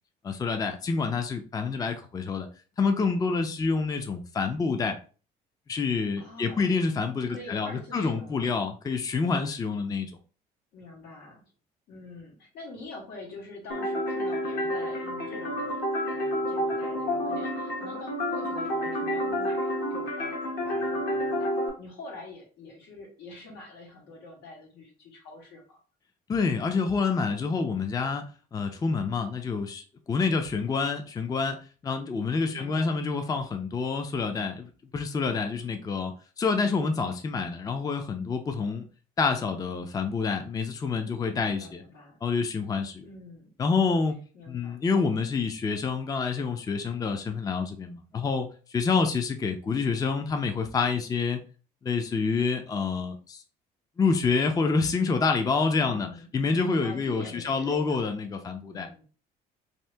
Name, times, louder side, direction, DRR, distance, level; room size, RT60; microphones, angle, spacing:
voice 1, 0.2-2.5 2.8-4.9 5.7-10.1 26.3-38.9 39.2-41.8 42.2-43.0 43.6-44.2 44.5-51.4 51.8-53.4 54.0-56.1 56.3-58.9, left 4 dB, 20° left, 6 dB, 0.4 m, -27 dB
voice 2, 6.2-6.8 7.3-8.5 10.7-11.4 11.9-21.5 21.8-25.8 32.5-33.0 41.4-42.2 43.0-43.5 44.3-44.8 55.8-56.3 56.8-58.0 58.7-59.0, left 2 dB, 85° left, -1 dB, 1.4 m, -45 dB
sound 1, 13.7-21.7, equal, 65° left, 1.1 m, -29 dB
2.8 x 2.7 x 3.3 m, 0.37 s
cardioid pair, 110°, 17 cm